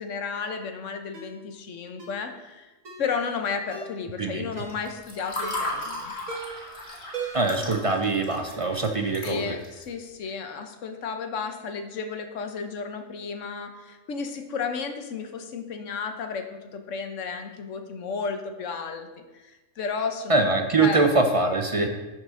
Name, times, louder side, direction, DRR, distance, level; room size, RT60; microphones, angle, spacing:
voice 1, 0.0-2.7 3.0-6.1 9.2-19.1 19.3-20.4 20.8-21.1, left 5 dB, 70° left, 6 dB, 1.2 m, -33 dB
Ringtone, 1.1-1.4 2.0-2.2 2.9-3.1 3.7-4.0 4.6-4.9 5.4-5.8 6.3-6.7 7.1-7.6 7.9-8.0, right 5 dB, 80° right, 1.8 m, -37 dB
voice 2, 4.2-4.5 7.3-9.6 20.3-21.9, right 3 dB, 45° right, 5 dB, 0.4 m, -23 dB
Water / Fill (with liquid), 4.7-9.8, left 1 dB, 50° left, 2.0 m, -35 dB
11.0 x 5.9 x 3.7 m, 1.1 s
omnidirectional pair, 1.4 m